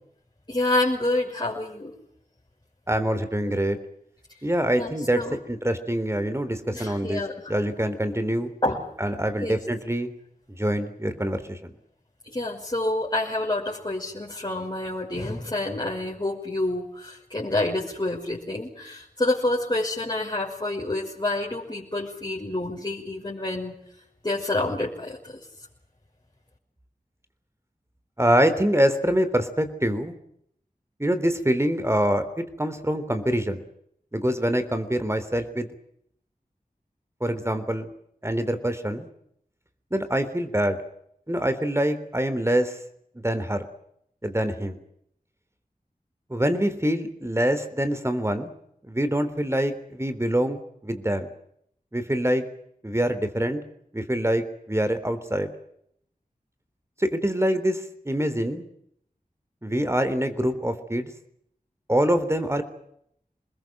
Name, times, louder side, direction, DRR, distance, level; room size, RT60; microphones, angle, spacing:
voice 1, 0.5-1.9 4.7-5.4 6.7-7.6 8.6-8.8 9.4-9.6 12.2-23.7 24.2-25.4, left 2 dB, 30° left, -5 dB, 5.8 m, -28 dB
voice 2, 2.9-3.8 4.4-7.2 7.5-8.5 9.0-10.1 10.5-11.7 28.2-30.1 31.0-32.3 32.6-33.6 34.1-35.7 37.2-37.9 38.2-39.1 39.9-40.8 41.3-42.8 43.2-43.6 44.2-44.8 46.3-48.5 48.9-51.3 51.9-52.4 52.8-53.6 53.9-55.5 57.0-58.7 59.6-61.1 61.9-62.6, equal, 20° right, 10 dB, 3.7 m, -25 dB
27.5 x 21.0 x 7.7 m, 0.72 s
wide cardioid pair, 55°, 15 cm